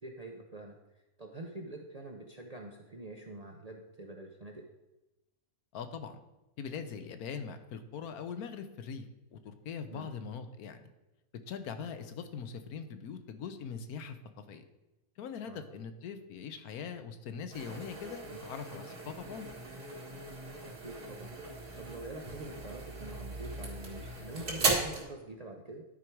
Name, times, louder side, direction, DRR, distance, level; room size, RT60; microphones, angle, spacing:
voice 1, 0.0-0.8 1.2-4.6 9.9-10.1 15.4-15.7 20.6-21.4 21.8-25.8, right 2 dB, 40° right, 1 dB, 0.5 m, -45 dB
voice 2, 5.7-6.2 6.6-9.1 9.3-10.9 11.5-14.6 15.2-19.5, left 6 dB, 80° left, 9 dB, 1.2 m, -42 dB
sound 1, 17.5-25.0, right 3 dB, 85° right, 2.4 m, -37 dB
11.0 x 4.8 x 4.6 m, 1.0 s
omnidirectional pair, 1.6 m